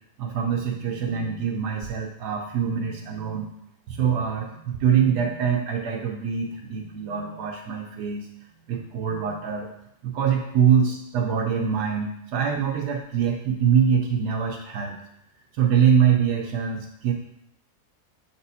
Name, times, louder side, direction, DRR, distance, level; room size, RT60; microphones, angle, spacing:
voice 1, 0.2-3.5 3.9-8.3 8.7-9.7 10.0-15.0 15.6-17.1, right 7 dB, 80° right, 1 dB, 1.2 m, -24 dB
7.3 x 4.4 x 4.0 m, 0.76 s
omnidirectional pair, 1.7 m